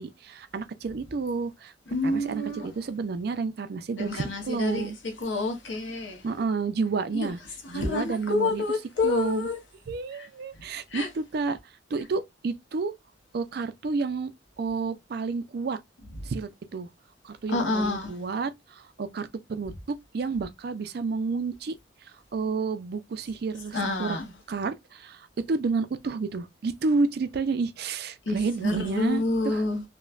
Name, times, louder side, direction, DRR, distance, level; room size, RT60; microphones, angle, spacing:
voice 1, 0.0-1.7 2.0-5.0 6.2-7.4 7.7-8.6 9.0-9.5 9.9-12.9 13.3-14.3 14.6-15.8 16.2-16.9 17.2-19.7 20.1-21.8 22.0-24.2 24.5-29.6, right 4 dB, 55° right, 0.4 m, -30 dB
voice 2, 1.9-2.7 4.0-4.9 5.2-6.2 7.1-7.3 7.7-9.6 10.2-10.3 10.9-11.1 17.5-18.1 23.7-24.3 28.3-29.8, left 2 dB, 75° left, 0.9 m, -28 dB
3.0 x 2.1 x 2.3 m
head